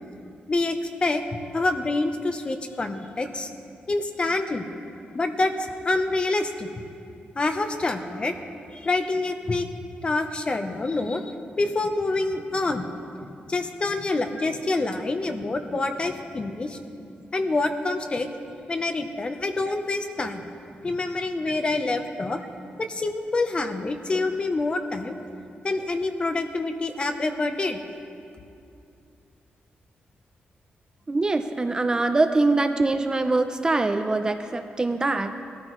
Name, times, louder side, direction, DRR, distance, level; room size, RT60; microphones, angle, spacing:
voice 1, 0.5-3.5 3.9-4.6 5.1-5.5 5.8-6.7 7.3-8.3 8.7-9.7 10.0-12.9 13.5-16.8 17.3-18.3 18.7-20.4 20.8-22.4 22.8-25.2 25.6-27.8, left 2 dB, 30° left, 7 dB, 0.8 m, -26 dB
voice 2, 31.1-35.4, right 2 dB, 20° right, 7 dB, 0.5 m, -23 dB
20.5 x 13.5 x 3.1 m, 2.5 s
wide cardioid pair, 135°, 4 cm